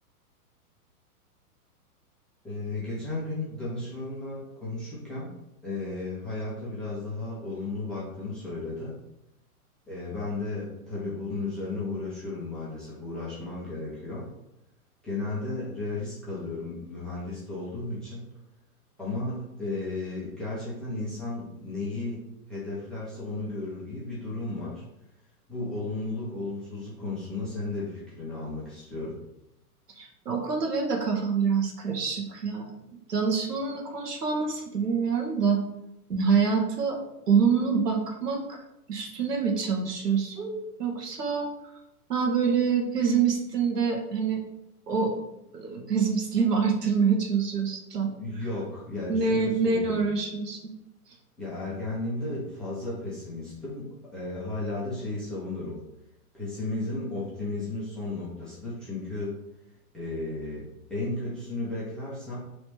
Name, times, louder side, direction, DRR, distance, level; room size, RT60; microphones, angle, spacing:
voice 1, 2.4-5.3 5.6-8.9 9.9-14.3 15.0-18.3 19.0-22.2 22.5-24.8 25.5-29.2 48.2-50.0 51.4-55.8 56.3-59.4 59.9-62.4, left 2 dB, ahead, -9 dB, 0.4 m, -34 dB
voice 2, 30.0-32.7 33.1-35.6 36.1-38.6 38.9-41.5 42.1-44.4 44.9-45.2 45.5-48.1 49.1-50.6, right 5 dB, 85° right, 1 dB, 1.4 m, -26 dB
3.1 x 3.1 x 4.6 m, 0.87 s
hypercardioid pair, 130°, 46 cm